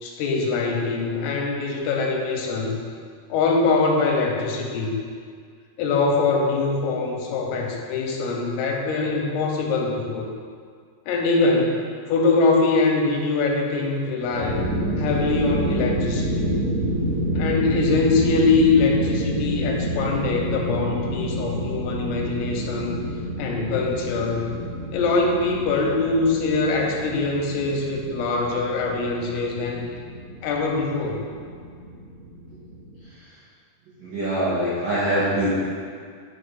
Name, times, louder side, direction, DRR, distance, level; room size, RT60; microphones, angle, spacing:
voice 1, 0.0-2.8 3.3-4.9 5.8-10.3 11.1-11.8 12.1-14.6 15.0-16.5 17.4-23.0 23.4-24.5 24.9-29.8 30.4-31.3, left 3 dB, 85° left, 1 dB, 2.6 m, -23 dB
sound 1, 14.2-33.0, right 1 dB, 60° right, 2.5 m, -28 dB
voice 2, 34.0-35.5, right 1 dB, 80° right, -9 dB, 1.6 m, -23 dB
9.3 x 4.2 x 3.6 m, 2.1 s
omnidirectional pair, 4.7 m